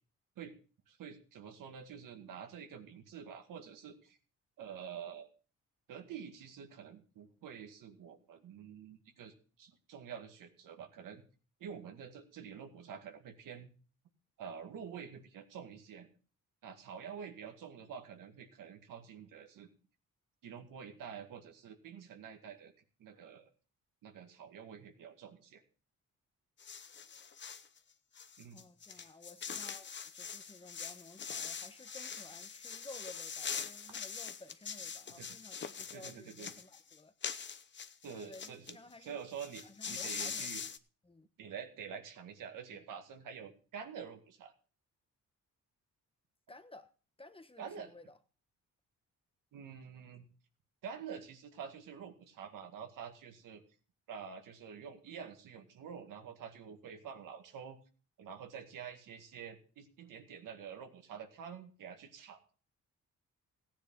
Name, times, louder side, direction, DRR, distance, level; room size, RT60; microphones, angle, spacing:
voice 1, 0.9-4.2 4.6-5.3 5.9-11.2 11.6-13.7 14.4-16.1 16.6-19.7 20.4-22.7 23.0-23.5 24.0-25.6 28.4-28.6 28.9-29.1 35.2-35.4 35.9-36.5 38.0-40.6 41.4-44.5 47.6-47.9 49.5-50.3 50.8-53.6 54.1-57.8 58.2-62.4, right 7 dB, 85° right, 2.1 m, -48 dB
sound 1, 26.6-27.7 28.1-38.7 39.0-39.1 39.3-40.8, left 6 dB, 35° left, 0.8 m, -43 dB
voice 2, 28.5-37.1 38.1-39.2 39.6-40.5 41.0-41.3 46.5-46.9 47.2-48.2, left 2 dB, 15° left, 1.1 m, -54 dB
15.0 x 9.9 x 3.8 m
cardioid pair, 100°, 32 cm